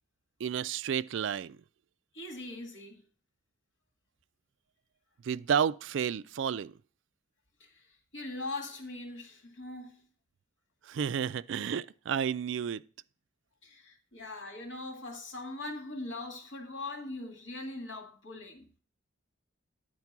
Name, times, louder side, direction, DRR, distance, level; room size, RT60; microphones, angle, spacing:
voice 1, 0.4-1.6 5.2-6.7 10.8-12.8, right 8 dB, 65° right, 0.3 m, -31 dB
voice 2, 2.1-3.0 7.6-7.9 8.1-10.1 13.6-18.7, left 2 dB, 65° left, 1.9 m, -41 dB
9.7 x 4.4 x 5.9 m
head